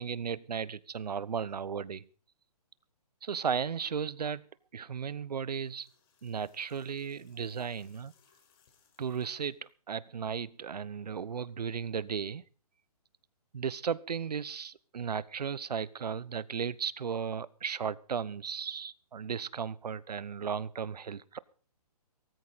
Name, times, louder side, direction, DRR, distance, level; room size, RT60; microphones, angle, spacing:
voice 1, 0.0-2.1 3.2-4.4 4.7-5.9 6.2-8.1 9.0-12.4 13.5-21.4, right 7 dB, 80° right, 20 dB, 1.0 m, -35 dB
sound 1, 5.4-9.7, left 7 dB, 35° left, 4.6 m, -69 dB
18.5 x 14.0 x 4.1 m, 0.41 s
hypercardioid pair, 160°, 20 cm